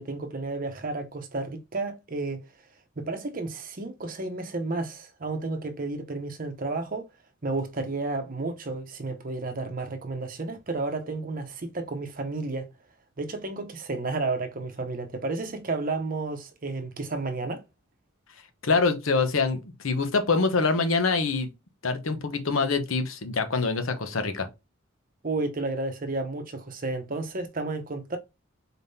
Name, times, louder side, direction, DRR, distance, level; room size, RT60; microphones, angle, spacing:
voice 1, 0.0-2.4 3.0-7.0 7.4-12.7 13.2-17.6 25.2-28.2, right 3 dB, 45° right, 0.7 m, -32 dB
voice 2, 18.6-21.5 21.8-24.5, left 4 dB, 90° left, 0.9 m, -25 dB
4.1 x 3.6 x 2.7 m
head